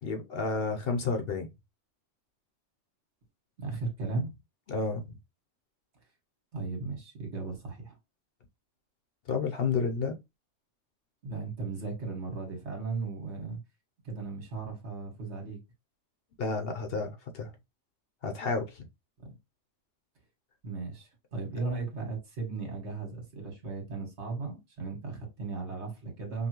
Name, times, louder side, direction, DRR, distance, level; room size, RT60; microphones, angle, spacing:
voice 1, 0.0-1.5 4.7-5.0 9.3-10.2 16.4-17.5 18.2-18.9, left 4 dB, 55° left, 0.9 m, -31 dB
voice 2, 3.6-4.3 6.5-8.0 11.2-13.6 14.0-15.6 19.2-19.3 20.6-26.5, right 3 dB, 65° right, 1.8 m, -36 dB
5.4 x 2.3 x 2.9 m
omnidirectional pair, 1.2 m